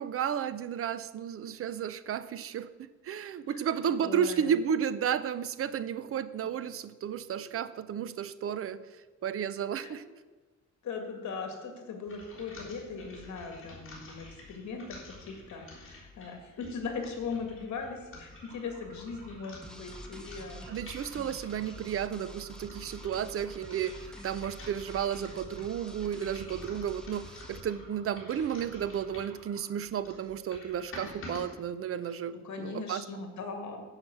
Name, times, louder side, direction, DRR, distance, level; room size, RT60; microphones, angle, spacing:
voice 1, 0.0-8.8 9.2-10.0 20.7-27.2 27.5-33.2, right 8 dB, 50° right, 15 dB, 0.5 m, -33 dB
voice 2, 3.4-4.5 9.8-9.9 10.8-20.7 32.0-33.8, left 4 dB, 65° left, 4 dB, 2.0 m, -39 dB
sound 1, 12.1-21.9 22.5-29.4 29.8-31.4, left 2 dB, 45° left, 3.5 m, -50 dB
sound 2, 18.3-29.7, right 3 dB, 80° right, 2.4 m, -56 dB
sound 3, 19.6-27.6, equal, ahead, 0.7 m, -48 dB
10.0 x 5.8 x 7.8 m, 1.3 s
wide cardioid pair, 170°, 30 cm